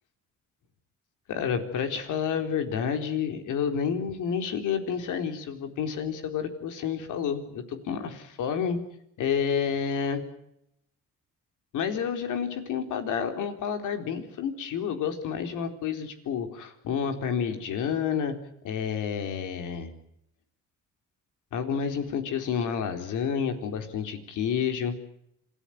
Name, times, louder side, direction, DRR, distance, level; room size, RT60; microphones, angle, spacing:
voice 1, 1.3-8.8 9.2-10.2 11.7-18.3 18.6-19.9 21.5-25.0, left 7 dB, 85° left, 6 dB, 4.1 m, -29 dB
27.5 x 16.5 x 9.4 m, 0.77 s
cardioid pair, 90°, 30 cm